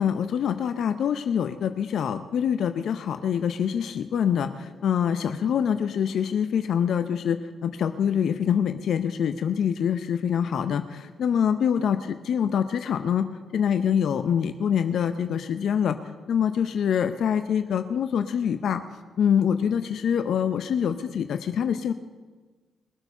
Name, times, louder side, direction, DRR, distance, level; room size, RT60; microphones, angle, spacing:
voice 1, 0.0-13.3 13.5-16.0 16.3-18.8 19.2-21.9, left 8 dB, 70° left, 9 dB, 0.6 m, -25 dB
21.5 x 8.0 x 5.5 m, 1.4 s
hypercardioid pair, 40°, 0 cm